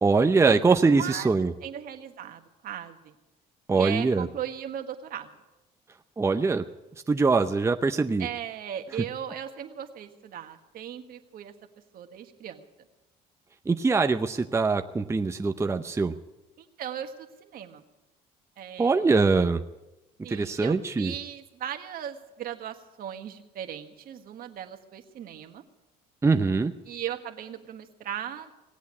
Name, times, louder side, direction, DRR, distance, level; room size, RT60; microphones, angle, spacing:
voice 1, 0.0-1.5 3.7-4.3 6.2-6.6 7.1-8.3 13.7-16.1 18.8-19.6 20.3-21.1 26.2-26.7, right 4 dB, 15° right, 7 dB, 0.7 m, -23 dB
voice 2, 1.0-1.3 1.6-3.1 3.7-5.3 8.2-11.5 11.9-12.6 16.6-17.8 18.6-19.1 20.2-25.6 26.8-28.5, right 10 dB, 65° right, 6 dB, 1.6 m, -37 dB
18.0 x 8.2 x 9.6 m, 1.0 s
cardioid pair, 95°, 17 cm